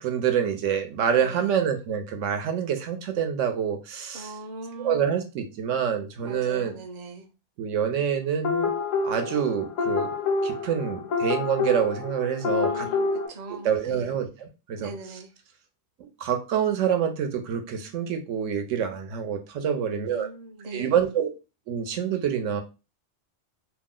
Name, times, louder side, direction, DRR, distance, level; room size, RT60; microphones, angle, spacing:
voice 1, 0.0-4.3 4.8-6.7 7.6-8.7 9.0-10.1 10.4-12.9 13.5-14.9 16.0-20.3 20.7-21.3 21.7-22.6, right 8 dB, 75° right, 0.9 m, -26 dB
voice 2, 1.1-1.6 4.1-5.2 6.2-7.3 12.5-14.1 14.8-15.3 19.7-20.9, right 2 dB, 55° right, 0.5 m, -40 dB
sound 1, 8.4-13.3, left 4 dB, 85° left, 1.0 m, -27 dB
2.6 x 2.0 x 3.6 m
omnidirectional pair, 1.3 m